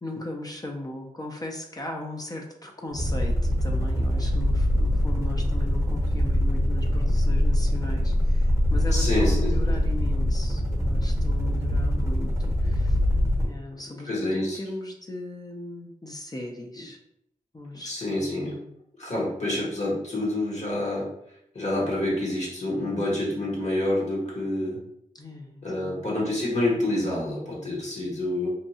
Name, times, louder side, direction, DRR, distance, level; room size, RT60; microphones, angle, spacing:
voice 1, 0.0-13.0 13.4-17.0 17.5-18.7 25.1-26.1, left 1 dB, 25° left, 1 dB, 0.5 m, -37 dB
sound 1, 2.9-13.5, left 1 dB, 20° right, 0.8 m, -23 dB
voice 2, 8.9-9.5 14.1-14.6 17.8-18.6 19.0-21.1 21.5-24.8 25.6-28.5, left 1 dB, 55° left, -4 dB, 1.1 m, -27 dB
2.7 x 2.2 x 2.7 m, 0.76 s
cardioid pair, 50°, 14 cm